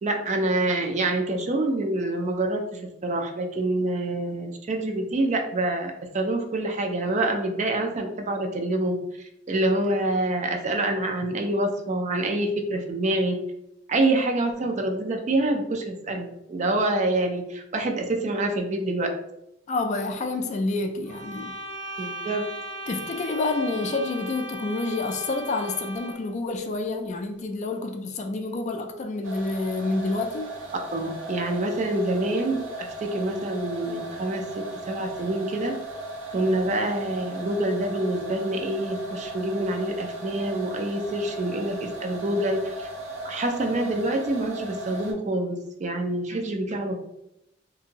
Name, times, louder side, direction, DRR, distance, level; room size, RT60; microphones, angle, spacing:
voice 1, 0.0-9.0 9.5-13.4 13.9-19.1 22.0-22.4 30.9-32.6 33.0-35.7 36.3-42.9 43.2-46.9, right 2 dB, 40° right, 4 dB, 0.4 m, -26 dB
voice 2, 19.7-21.6 22.0-22.1 22.9-30.6, left 3 dB, 40° left, 5 dB, 0.3 m, -28 dB
sound 1, 21.0-26.3, right 1 dB, 65° right, 1.3 m, -37 dB
sound 2, 29.2-45.1, right 1 dB, 85° right, 0.6 m, -37 dB
2.7 x 2.5 x 2.8 m, 0.83 s
head